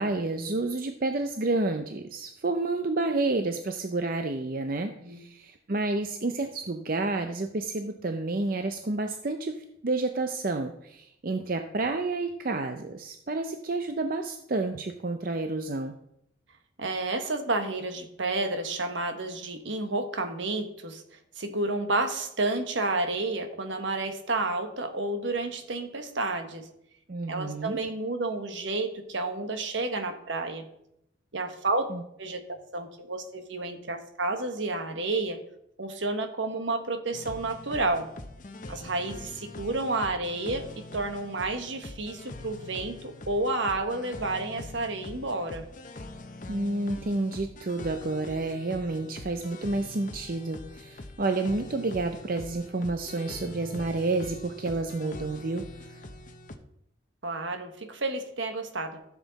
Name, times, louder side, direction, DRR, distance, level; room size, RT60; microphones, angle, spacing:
voice 1, 0.0-15.9 27.1-27.8 31.9-32.0 46.5-56.0, right 2 dB, 45° right, 6 dB, 0.6 m, -30 dB
voice 2, 16.8-26.7 27.3-30.7 31.3-31.9 32.2-32.4 32.7-35.4 35.8-38.1 38.7-40.7 40.9-45.7 57.2-59.0, right 2 dB, 65° right, 7 dB, 1.3 m, -30 dB
sound 1, 37.1-56.6, left 1 dB, 40° left, 0.8 m, -43 dB
14.0 x 7.3 x 4.1 m, 0.76 s
head